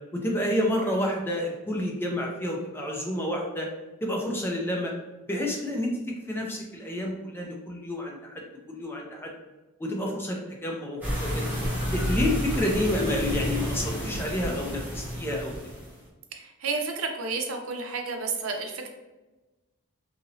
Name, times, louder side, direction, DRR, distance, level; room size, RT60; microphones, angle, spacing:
voice 1, 0.1-3.7 4.0-4.9 5.3-5.9 6.3-8.4 8.7-9.3 9.8-11.4 11.8-15.5, left 1 dB, 10° left, -1 dB, 0.4 m, -29 dB
sound 1, 11.0-16.0, equal, 10° right, 0.8 m, -30 dB
voice 2, 16.3-18.9, right 4 dB, 90° right, 3 dB, 0.5 m, -31 dB
2.9 x 2.7 x 2.7 m, 1.1 s
head